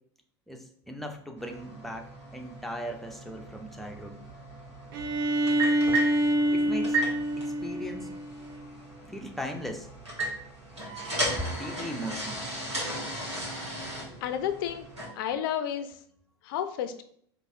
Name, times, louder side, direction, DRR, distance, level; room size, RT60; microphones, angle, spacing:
voice 1, 0.5-4.2 6.5-7.0 7.4-8.1 9.0-9.9 11.4-12.4, equal, ahead, 2 dB, 0.5 m, -38 dB
sound 1, 1.4-15.1, right 2 dB, 80° right, 1.3 m, -36 dB
Bowed string instrument, 4.9-8.7, right 1 dB, 55° right, 0.5 m, -27 dB
voice 2, 14.2-14.9 15.1-16.0 16.4-17.0, left 9 dB, 50° left, 10 dB, 0.4 m, -31 dB
4.7 x 2.5 x 2.7 m, 0.65 s
figure-of-eight pair, 80°, 14 cm